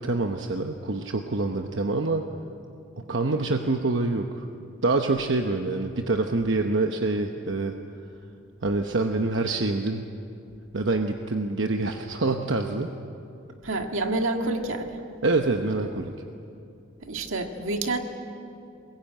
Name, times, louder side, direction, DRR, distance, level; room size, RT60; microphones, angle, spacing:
voice 1, 0.0-2.2 3.0-4.5 4.8-7.7 8.6-10.0 10.7-12.9 15.2-16.1, right 3 dB, 65° right, 4 dB, 0.9 m, -26 dB
voice 2, 13.6-15.0 17.0-18.0, right 2 dB, 85° right, 4 dB, 1.9 m, -28 dB
22.5 x 21.5 x 8.9 m, 2.7 s
head